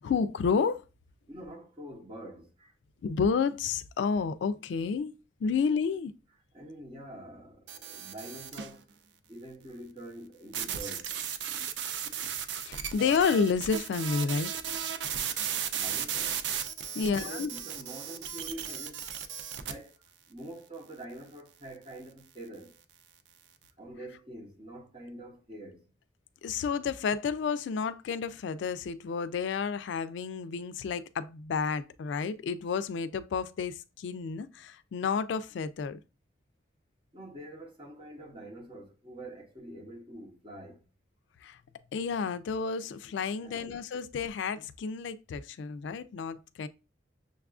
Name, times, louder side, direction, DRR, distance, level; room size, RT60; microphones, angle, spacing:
voice 1, 0.0-0.8 3.0-5.1 5.4-6.1 12.7-14.5 16.9-17.5 26.4-36.0 41.4-41.6 41.9-46.7, left 5 dB, 75° left, 0.3 m, -30 dB
voice 2, 1.3-2.7 6.5-8.9 9.3-11.2 15.7-16.5 16.9-19.1 19.5-22.8 23.8-25.9 37.1-40.9 43.4-43.8, right 1 dB, 25° right, 0.9 m, -46 dB
sound 1, 7.7-8.8 10.5-19.7, right 8 dB, 70° right, 0.4 m, -35 dB
6.4 x 2.4 x 2.4 m
head